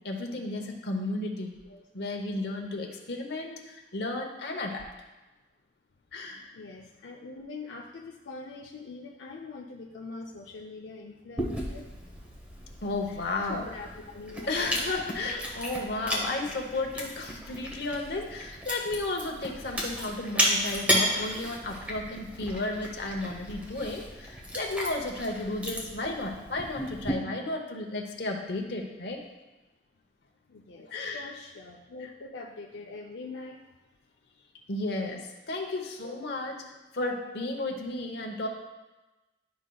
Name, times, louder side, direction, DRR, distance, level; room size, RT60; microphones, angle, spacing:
voice 1, 0.0-1.5 1.9-4.9 6.1-6.5 12.8-13.7 14.5-29.2 30.9-31.3 34.7-36.6 36.9-38.5, left 2 dB, 65° left, 2 dB, 0.9 m, -33 dB
voice 2, 6.5-11.9 13.1-14.9 15.2-15.5 30.5-30.9 31.1-33.6 36.0-36.3, left 3 dB, 90° left, 0 dB, 0.5 m, -43 dB
Chewing mastication, 11.4-27.1, equal, 10° right, 1.0 m, -34 dB
11.5 x 5.2 x 2.3 m, 1.1 s
head